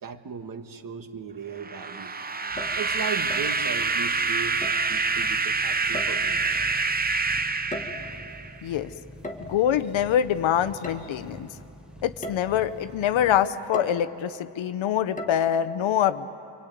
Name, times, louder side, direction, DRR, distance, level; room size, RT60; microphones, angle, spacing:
voice 1, 0.0-2.1 2.8-6.4, right 6 dB, 40° right, 8 dB, 1.5 m, -37 dB
sound 1, 1.6-8.6, right 4 dB, 20° right, 0.6 m, -27 dB
sound 2, 2.4-2.9 3.3-3.6 4.6-4.9 5.9-6.4 7.5-8.2 9.2-9.6 10.8-11.0 11.5-11.6 12.2-12.5 13.7-14.1 15.2-15.4, left 1 dB, 15° left, 1.8 m, -37 dB
sound 3, 2.5-13.5, equal, ahead, 1.0 m, -46 dB
voice 2, 9.4-11.5 12.0-16.3, left 10 dB, 65° left, 10 dB, 0.8 m, -25 dB
26.5 x 24.5 x 9.2 m, 2.8 s
wide cardioid pair, 165°, 50 cm